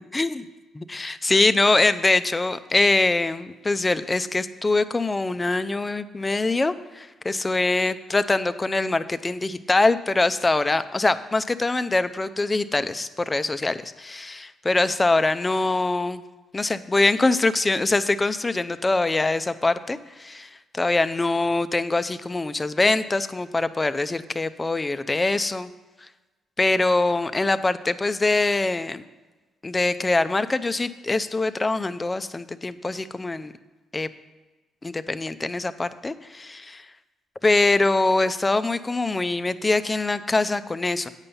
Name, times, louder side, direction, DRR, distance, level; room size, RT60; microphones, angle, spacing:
voice 1, 0.1-0.4 0.8-16.2 16.5-25.7 26.6-29.0 29.6-33.5 33.9-34.1 34.8-36.9 37.4-41.1, left 2 dB, 20° left, 12 dB, 0.5 m, -23 dB
8.9 x 5.5 x 6.9 m, 1.2 s
cardioid pair, 90°, 0 cm